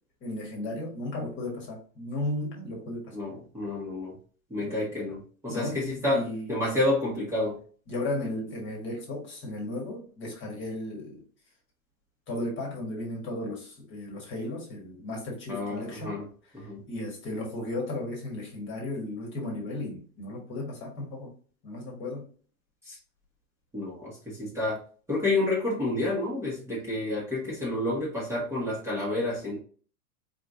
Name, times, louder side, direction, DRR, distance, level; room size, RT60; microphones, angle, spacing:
voice 1, 0.2-3.1 4.6-4.9 5.5-6.6 7.9-11.2 12.3-16.2 16.9-21.3 21.6-22.3, left 1 dB, 25° left, 1.5 m, -35 dB
voice 2, 3.1-4.2 4.5-7.6 15.5-16.3 16.5-16.8 22.8-23.0 23.7-24.8 25.1-29.6, left 2 dB, 5° right, 1.3 m, -29 dB
4.7 x 3.4 x 2.6 m
supercardioid pair, 145°, 46 cm